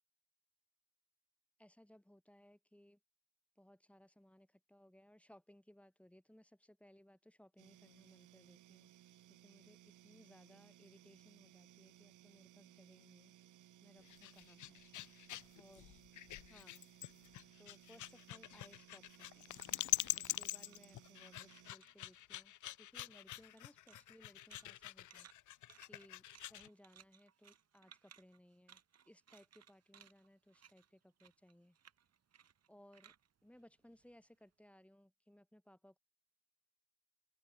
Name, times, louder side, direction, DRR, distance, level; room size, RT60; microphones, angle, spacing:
voice 1, 1.6-3.0 3.6-8.9 9.4-13.3 13.8-14.8 15.6-15.9 16.5-16.9 17.6-19.6 20.2-25.5 25.8-31.8 32.7-33.1 33.4-36.0, left 1 dB, 5° left, 6.9 m, -64 dB
sound 1, 7.6-21.7, right 13 dB, 80° right, 4.2 m, -63 dB
sound 2, 14.0-26.7, left 14 dB, 80° left, 1.6 m, -44 dB
sound 3, 17.3-21.2 21.5-22.3 22.6-34.4, right 8 dB, 55° right, 5.3 m, -66 dB
open air
cardioid pair, 90°, 30 cm